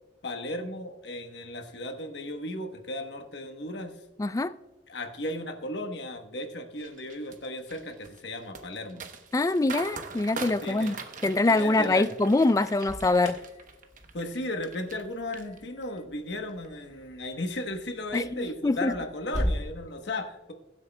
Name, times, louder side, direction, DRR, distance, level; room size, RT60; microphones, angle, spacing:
voice 1, 0.2-4.0 4.9-9.1 10.6-11.0 11.5-12.1 14.1-20.5, left 1 dB, 70° left, 1.1 m, -35 dB
voice 2, 4.2-4.5 9.3-10.9 11.2-13.4 18.1-18.9, left 2 dB, 20° left, 0.3 m, -24 dB
sound 1, 6.8-15.0 15.3-16.0 16.4-16.7, right 4 dB, 45° right, 0.9 m, -42 dB
Alarm, 12.6-19.6, equal, 40° left, 1.6 m, -38 dB
21.5 x 7.9 x 2.2 m
head